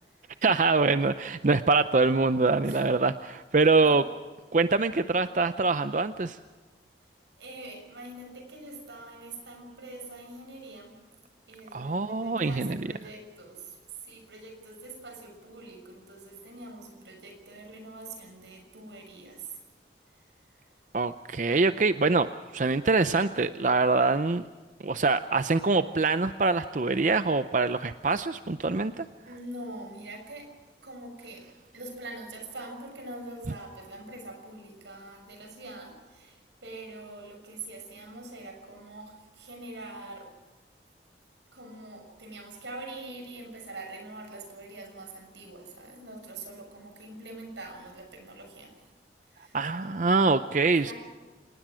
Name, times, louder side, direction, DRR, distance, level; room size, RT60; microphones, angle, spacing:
voice 1, 0.4-4.0 4.5-6.4 11.7-12.9 20.9-24.4 24.8-29.1 49.5-50.9, right 3 dB, 45° right, 11 dB, 0.6 m, -24 dB
voice 2, 7.4-10.9 11.5-13.8 14.0-19.6 29.2-30.5 30.8-31.5 31.7-40.3 41.5-48.7 49.3-49.6 50.8-50.9, right 2 dB, 85° right, 4 dB, 6.5 m, -44 dB
26.5 x 19.5 x 6.2 m, 1.4 s
head